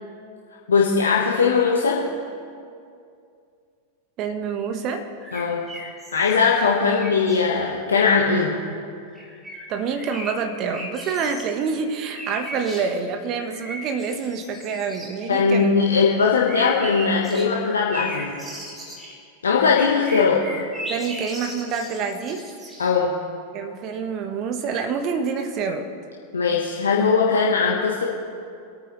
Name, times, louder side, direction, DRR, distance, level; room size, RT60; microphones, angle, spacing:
voice 1, 0.7-2.1 5.3-5.7 6.1-8.6 15.3-18.3 19.4-20.4 22.8-23.2 26.3-28.1, left 5 dB, 70° left, -3 dB, 1.2 m, -20 dB
voice 2, 4.2-5.1 9.7-15.8 20.9-22.5 23.5-25.9, right 5 dB, 35° right, 6 dB, 1.3 m, -27 dB
sound 1, 5.2-7.5 9.1-11.5 12.0-12.9 13.3-15.1 16.4-23.0, equal, 10° right, 2.7 m, -37 dB
25.5 x 9.2 x 3.2 m, 2.4 s
figure-of-eight pair, 90°, 0 cm